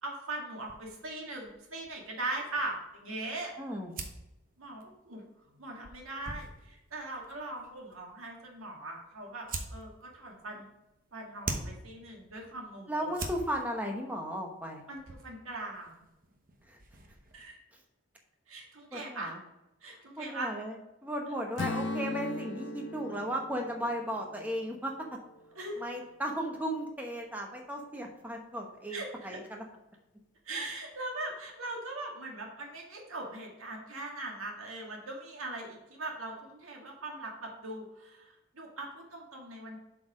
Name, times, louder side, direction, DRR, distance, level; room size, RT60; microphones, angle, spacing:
voice 1, 0.0-3.5 4.6-5.2 5.6-10.7 11.1-13.1 14.9-16.0 17.3-17.6 18.5-19.3 19.8-20.5 25.6-25.8 28.9-29.4 30.5-39.8, right 2 dB, 85° right, 0 dB, 1.9 m, -40 dB
sound 1, 0.6-17.5, right 3 dB, 40° right, 0.9 m, -46 dB
voice 2, 3.6-3.9 12.9-14.8 16.7-16.8 18.9-19.4 19.9-24.9 25.8-29.6, equal, 10° right, 1 dB, 0.9 m, -36 dB
Strum, 21.6-25.8, left 3 dB, 60° left, 0.6 m, -39 dB
7.5 x 4.7 x 5.0 m, 0.96 s
head